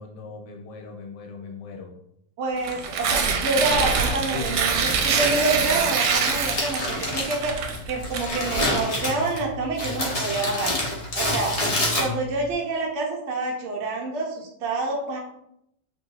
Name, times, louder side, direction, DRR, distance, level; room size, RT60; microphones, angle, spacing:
voice 1, 0.0-1.9 4.3-4.9 11.5-11.9, left 4 dB, 75° left, 3 dB, 1.3 m, -39 dB
voice 2, 2.4-7.5 7.9-10.7 11.1-15.2, right 2 dB, 60° right, 0 dB, 0.7 m, -27 dB
Tearing, 2.6-8.8, right 5 dB, 75° right, 1.2 m, -25 dB
Crumpling crinkling, 3.8-12.5, left 1 dB, 45° left, 0.4 m, -29 dB
3.0 x 2.6 x 3.9 m, 0.76 s
omnidirectional pair, 1.9 m